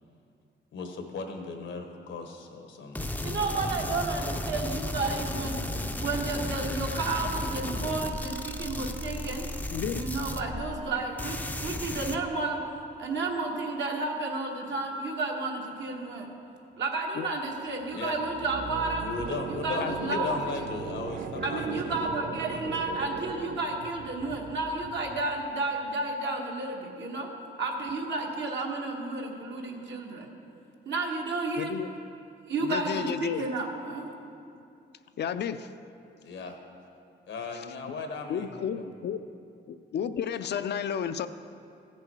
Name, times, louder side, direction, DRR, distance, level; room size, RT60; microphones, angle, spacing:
voice 1, 0.7-3.3 17.9-18.2 19.0-22.1 36.2-36.6 37.3-38.5 38.7-38.9, left 4 dB, 90° left, 4 dB, 1.2 m, -37 dB
sound 1, 2.9-10.9 11.2-12.2, left 1 dB, 10° left, 0.4 m, -34 dB
voice 2, 3.2-5.6 6.0-9.4 9.9-12.6 13.0-16.3 16.8-19.0 19.5-20.7 21.4-27.3 27.6-30.3 30.8-31.8 32.5-34.0, right 3 dB, 70° right, 1 dB, 1.4 m, -32 dB
voice 3, 9.7-10.1 17.2-17.3 19.8-20.4 31.6-31.9 32.6-33.5 35.2-35.7 37.5-37.6 38.3-39.2 39.7-41.3, left 8 dB, 65° left, 11 dB, 0.4 m, -32 dB
sound 2, 17.7-25.5, right 5 dB, 50° right, 0.6 m, -39 dB
15.0 x 6.8 x 4.8 m, 2.6 s
cardioid pair, 115°, 19 cm